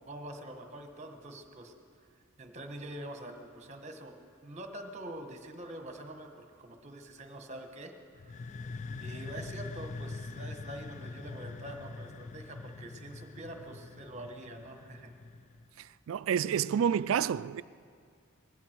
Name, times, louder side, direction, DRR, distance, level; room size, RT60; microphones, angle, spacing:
voice 1, 0.1-1.7 2.4-4.2 4.4-7.9 8.3-8.5 9.0-15.1, right 1 dB, 35° right, 1.3 m, -45 dB
sound 1, 8.1-15.8, left 3 dB, 35° left, 0.4 m, -43 dB
voice 2, 15.8-17.6, right 8 dB, 70° right, 0.3 m, -29 dB
19.5 x 15.5 x 4.6 m
head